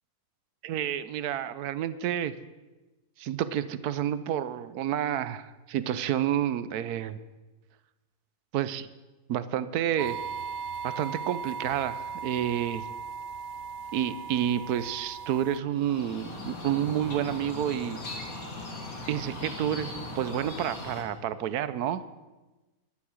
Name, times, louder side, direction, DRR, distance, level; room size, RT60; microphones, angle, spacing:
voice 1, 0.6-2.4 3.2-7.2 8.5-8.9 9.3-10.2 10.8-12.8 13.9-18.0 19.1-22.0, right 10 dB, 85° right, 14 dB, 1.2 m, -29 dB
sound 1, 10.0-15.6, right 6 dB, 65° right, 1.1 m, -37 dB
sound 2, 15.7-21.0, left 2 dB, 65° left, 2.6 m, -39 dB
11.5 x 11.0 x 6.4 m, 1.2 s
omnidirectional pair, 1.6 m